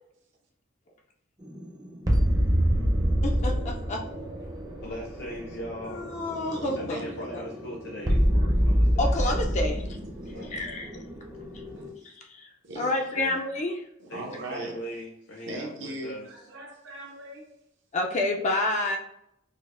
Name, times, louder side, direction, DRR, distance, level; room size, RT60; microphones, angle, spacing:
sound 1, 1.4-11.9, equal, 20° right, 0.5 m, -27 dB
voice 1, 3.2-4.0 5.9-7.0 9.0-9.8 10.5-11.0 12.0-12.5 12.8-13.8 17.9-19.0, left 2 dB, 35° left, 1 dB, 0.3 m, -29 dB
voice 2, 4.8-6.0 6.8-9.1 10.3-10.7 13.1-13.4 14.1-16.3, equal, 70° left, -3 dB, 0.7 m, -39 dB
voice 3, 6.5-7.1 10.2-10.6 12.6-13.0 14.0-14.7 15.5-17.5, right 1 dB, 65° right, 0 dB, 0.6 m, -39 dB
5.0 x 2.0 x 2.4 m, 0.79 s
head